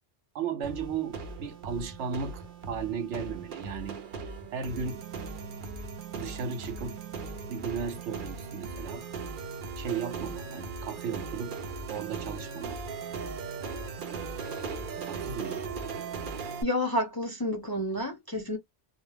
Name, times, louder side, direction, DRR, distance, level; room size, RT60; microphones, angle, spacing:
voice 1, 0.3-4.0 4.2-5.0 6.1-7.0 7.5-9.0 9.8-11.6 11.9-13.1 15.1-15.6, right 6 dB, 80° right, 0.9 m, -35 dB
sound 1, 0.6-16.6, right 4 dB, 55° right, 0.6 m, -38 dB
voice 2, 16.6-18.6, left 1 dB, 30° left, 0.4 m, -30 dB
2.2 x 2.1 x 3.1 m
omnidirectional pair, 1.2 m